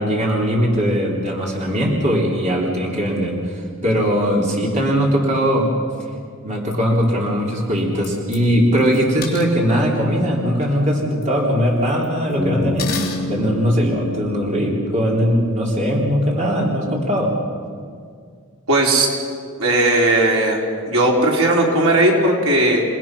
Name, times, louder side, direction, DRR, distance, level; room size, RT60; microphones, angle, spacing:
voice 1, 0.0-5.7 6.4-12.9 13.3-17.3, equal, 30° right, -2 dB, 3.5 m, -20 dB
sound 1, 6.6-6.7 7.0-7.1 7.8-8.4 8.8-9.5 10.6-10.7 11.0-11.3 11.8-12.3 12.8-13.2, left 7 dB, 45° left, 3.7 m, -31 dB
Bass guitar, 12.4-16.4, left 1 dB, 10° right, 6.9 m, -30 dB
voice 2, 18.7-19.1 19.6-20.6 20.9-22.8, right 1 dB, 70° right, -1 dB, 4.2 m, -16 dB
28.5 x 20.0 x 6.1 m, 2.1 s
head